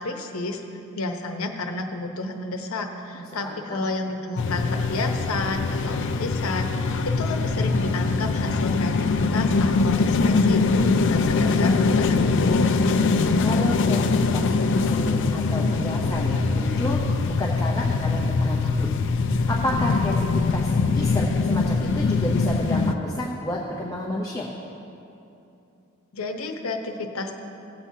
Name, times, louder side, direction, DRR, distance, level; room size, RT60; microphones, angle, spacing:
voice 1, 0.0-10.6 10.9-12.7 26.1-27.3, left 2 dB, 85° left, 4 dB, 0.9 m, -31 dB
voice 2, 3.1-3.9 13.4-14.0 14.3-18.9 19.2-24.5, left 1 dB, 15° left, -3 dB, 0.7 m, -31 dB
sound 1, 4.4-22.9, left 4 dB, 60° left, 0.4 m, -22 dB
16.5 x 7.7 x 2.8 m, 2.8 s
head